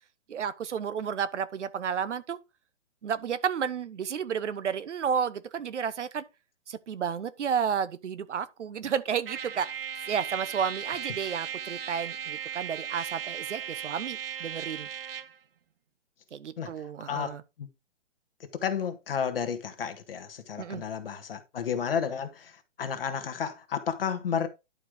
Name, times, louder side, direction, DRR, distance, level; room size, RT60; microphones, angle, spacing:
voice 1, 0.3-2.4 3.0-6.2 6.7-14.9 16.3-17.4 20.6-20.8, right 7 dB, 70° right, 1.0 m, -32 dB
Trumpet, 9.2-15.4, right 8 dB, 50° right, 0.7 m, -37 dB
voice 2, 17.1-17.7 18.6-22.4 22.8-24.5, left 7 dB, 50° left, 1.6 m, -32 dB
11.0 x 4.9 x 3.8 m
hypercardioid pair, 175°, 37 cm